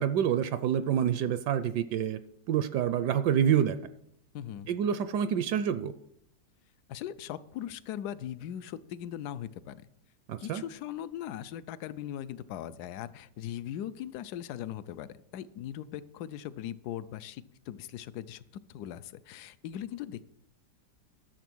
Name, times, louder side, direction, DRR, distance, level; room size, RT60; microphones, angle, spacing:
voice 1, 0.0-2.2 2.5-3.8 4.7-5.9 10.3-10.6, right 9 dB, 75° right, 13 dB, 1.1 m, -27 dB
voice 2, 4.3-4.7 6.9-9.8 10.4-15.1 15.3-18.4 18.7-20.2, left 11 dB, 70° left, 15 dB, 1.0 m, -39 dB
12.0 x 7.0 x 6.1 m, 0.76 s
omnidirectional pair, 2.0 m